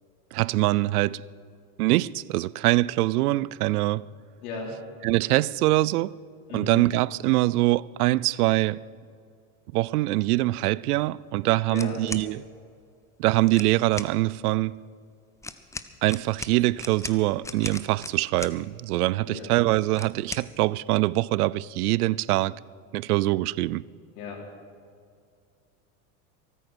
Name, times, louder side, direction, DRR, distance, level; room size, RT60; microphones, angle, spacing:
voice 1, 0.3-1.2 1.8-4.0 5.0-6.1 6.5-8.8 9.7-12.4 13.2-14.8 16.0-22.6 22.9-23.9, right 18 dB, 85° right, 0.5 m, -24 dB
voice 2, 4.4-4.7 6.5-6.8 11.7-12.0 19.3-19.5 24.1-24.4, left 4 dB, 75° left, 4.2 m, -35 dB
sound 1, 11.7-12.3 13.5-14.1 15.4-18.6 19.9-20.5, left 2 dB, 5° left, 0.7 m, -37 dB
23.5 x 9.2 x 6.2 m
supercardioid pair, 105°, 44 cm